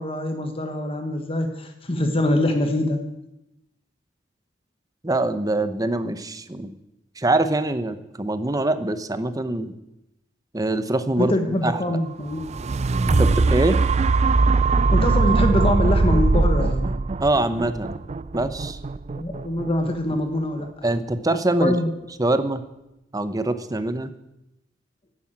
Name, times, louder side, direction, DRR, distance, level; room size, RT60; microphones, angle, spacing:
voice 1, 0.0-3.0 11.2-12.4 13.1-13.5 14.9-17.0 19.1-20.7 21.6-21.9, left 1 dB, 30° left, 5 dB, 1.4 m, -24 dB
voice 2, 5.0-6.7 7.2-9.7 10.5-11.4 11.6-12.0 13.0-13.8 17.2-18.0 18.3-18.8 20.8-21.7 22.2-22.6 23.1-24.1, right 2 dB, 20° right, 11 dB, 0.9 m, -24 dB
sound 1, 12.3-20.4 20.9-21.0, right 3 dB, 35° right, 0.4 m, -21 dB
12.0 x 10.0 x 8.8 m, 0.92 s
head